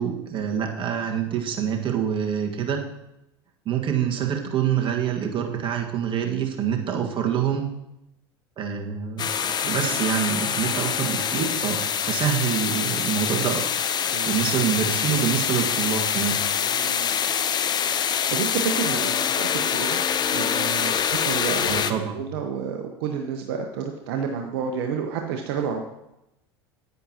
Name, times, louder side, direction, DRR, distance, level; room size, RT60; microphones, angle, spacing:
voice 1, 0.0-2.8 3.6-7.7 8.6-13.6 14.3-16.4 21.7-22.2, right 8 dB, 40° right, 2 dB, 1.6 m, -26 dB
sound 1, 9.2-21.9, left 8 dB, 30° left, 0.6 m, -25 dB
voice 2, 9.6-10.1 14.1-14.6 16.6-17.3 18.3-20.0 20.3-21.8 22.1-25.8, right 7 dB, 65° right, 4 dB, 0.9 m, -30 dB
9.9 x 9.2 x 2.9 m, 0.88 s
hypercardioid pair, 80°, 14 cm